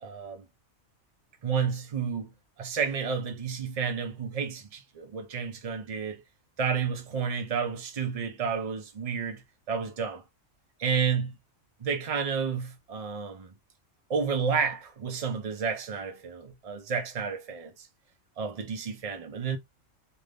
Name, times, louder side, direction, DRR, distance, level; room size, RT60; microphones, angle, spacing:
voice 1, 0.0-0.4 1.4-2.3 2.6-6.2 6.6-9.4 9.7-10.2 10.8-11.3 11.8-13.5 14.1-17.9 18.4-19.6, right 6 dB, 70° right, 0.3 m, -31 dB
2.6 x 2.5 x 3.3 m
omnidirectional pair, 1.4 m